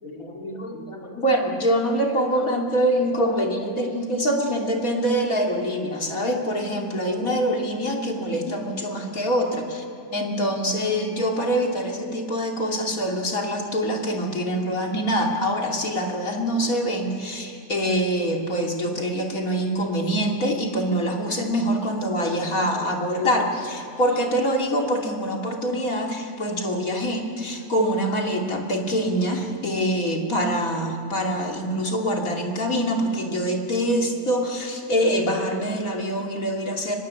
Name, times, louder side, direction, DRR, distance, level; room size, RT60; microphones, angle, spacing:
voice 1, 0.0-9.8 10.1-37.0, equal, 55° left, 1 dB, 3.2 m, -25 dB
24.0 x 21.0 x 8.4 m, 2.3 s
omnidirectional pair, 1.8 m